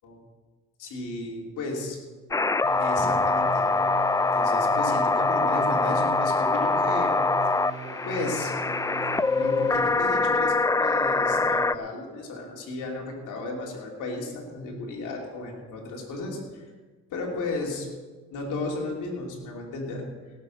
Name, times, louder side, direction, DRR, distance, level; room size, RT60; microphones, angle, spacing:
voice 1, 0.8-2.0 2.8-3.7 4.3-7.2 8.0-8.5 9.3-16.6 17.1-17.9 18.3-20.0, left 2 dB, 85° left, -1 dB, 3.1 m, -34 dB
sound 1, 2.3-11.8, left 3 dB, 10° left, 0.4 m, -24 dB
sound 2, 2.6-10.2, right 3 dB, 25° right, 4.2 m, -40 dB
17.5 x 7.5 x 6.4 m, 1.3 s
cardioid pair, 90°, 30 cm